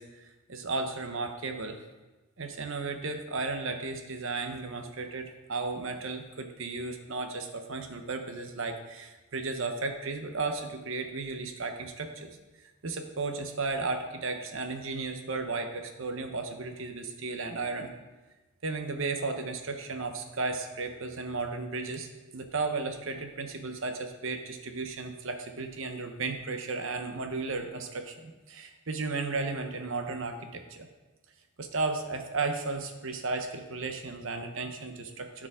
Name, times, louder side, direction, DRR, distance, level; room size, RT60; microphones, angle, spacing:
voice 1, 0.0-1.8 2.4-12.4 12.8-17.9 18.6-22.1 22.3-30.9 31.6-35.5, right 3 dB, 60° right, 6 dB, 0.9 m, -34 dB
13.5 x 5.0 x 3.7 m, 1.2 s
head